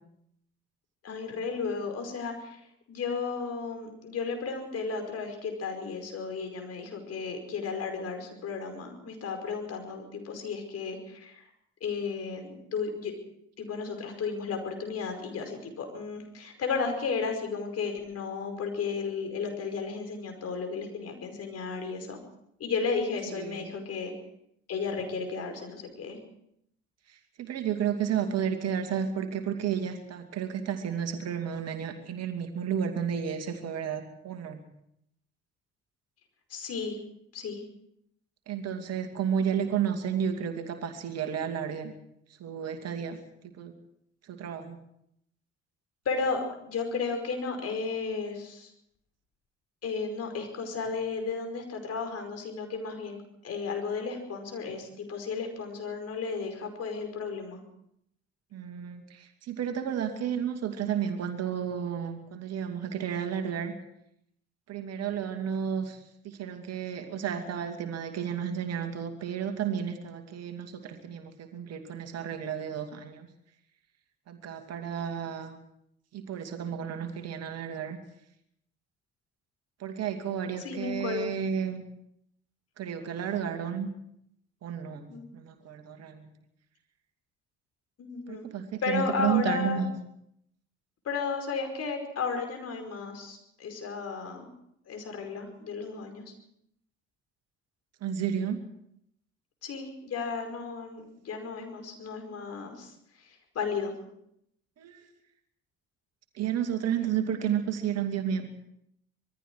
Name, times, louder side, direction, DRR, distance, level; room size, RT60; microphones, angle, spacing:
voice 1, 1.0-2.6 2.9-11.5 11.8-13.1 13.6-22.2 22.6-24.1 24.7-26.2 36.5-37.0 37.3-37.6 46.1-48.7 49.8-53.2 53.4-57.6 80.6-81.3 85.1-85.3 88.0-88.5 88.8-89.8 91.1-94.5 94.9-96.2 99.6-102.9 103.2-103.9, left 5 dB, 45° left, 5 dB, 5.2 m, -34 dB
voice 2, 23.3-23.6 27.1-34.6 38.5-41.9 42.4-43.2 43.6-43.7 44.2-44.8 58.5-63.7 64.7-73.3 74.3-75.6 76.1-78.0 79.8-81.8 82.8-83.9 84.6-86.3 88.3-89.9 98.0-98.6 104.8-105.1 106.3-108.5, right 8 dB, 45° right, 6 dB, 2.5 m, -32 dB
26.5 x 21.0 x 4.8 m, 0.74 s
figure-of-eight pair, 50°, 34 cm